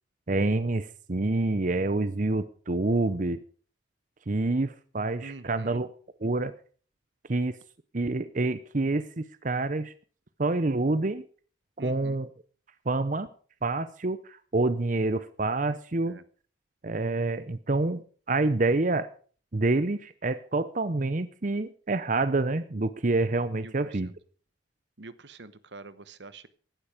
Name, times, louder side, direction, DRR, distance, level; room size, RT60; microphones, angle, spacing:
voice 1, 0.3-3.4 4.3-5.9 6.2-6.6 7.3-7.6 7.9-9.9 10.4-11.2 11.8-12.3 12.9-13.3 13.6-16.2 16.8-19.1 19.5-24.1, right 2 dB, 45° right, 13 dB, 0.8 m, -27 dB
voice 2, 5.2-5.8 11.8-12.2 16.0-16.2 23.4-24.1 25.0-26.5, right 3 dB, 70° right, 15 dB, 1.0 m, -46 dB
16.0 x 12.0 x 5.1 m, 0.42 s
head